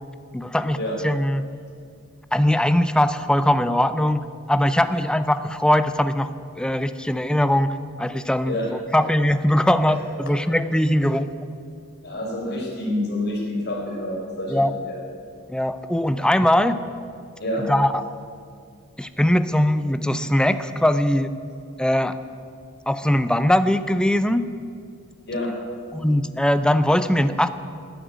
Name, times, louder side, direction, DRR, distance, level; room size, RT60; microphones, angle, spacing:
voice 1, 0.3-0.8 1.0-1.4 2.3-6.3 6.6-11.3 14.5-14.7 15.5-16.8 17.7-18.0 19.0-21.3 21.8-22.2 22.9-24.4 25.9-27.5, left 1 dB, 5° left, 12 dB, 0.5 m, -21 dB
voice 2, 8.5-9.0 9.9-10.0 12.0-15.0 17.4-17.7 25.3-25.5, left 1 dB, 50° left, -1 dB, 4.2 m, -28 dB
12.5 x 10.0 x 9.2 m, 2.3 s
head